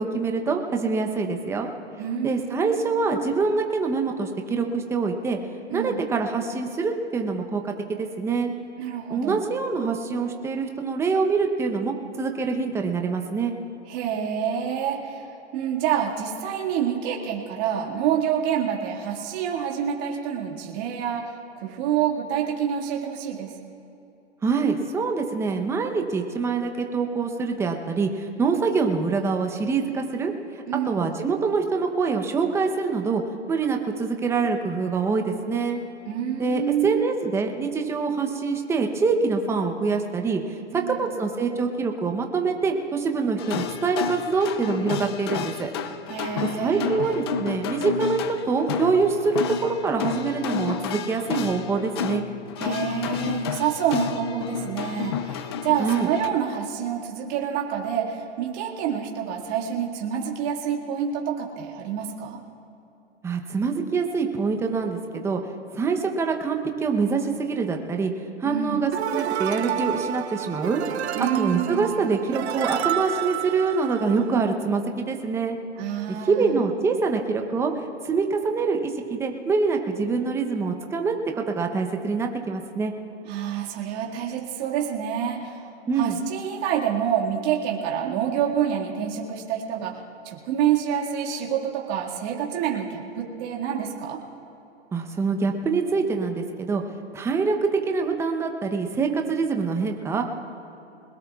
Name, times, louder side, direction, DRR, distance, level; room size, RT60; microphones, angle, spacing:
voice 1, 0.0-1.7 2.2-5.4 5.7-8.5 9.1-13.5 24.4-35.8 36.4-45.7 46.6-52.2 55.8-56.1 63.2-65.4 65.7-68.1 68.4-70.8 71.4-75.6 76.2-77.7 78.0-82.9 85.9-86.2 94.9-96.8 97.1-100.3, right 4 dB, 10° right, 4 dB, 0.8 m, -25 dB
voice 2, 2.0-3.3 5.7-6.0 8.8-9.5 13.9-15.3 15.5-23.6 30.7-31.2 36.1-37.1 40.7-41.1 46.1-47.2 52.6-62.4 68.4-68.8 71.1-72.1 75.8-76.6 83.3-85.7 85.9-94.2, right 9 dB, 40° right, -1 dB, 2.0 m, -27 dB
sound 1, 43.4-56.3, left 7 dB, 25° left, 0.3 m, -30 dB
sound 2, 68.9-74.4, right 10 dB, 70° right, 0.8 m, -30 dB
21.5 x 20.5 x 2.4 m, 2.9 s
hypercardioid pair, 140°, 34 cm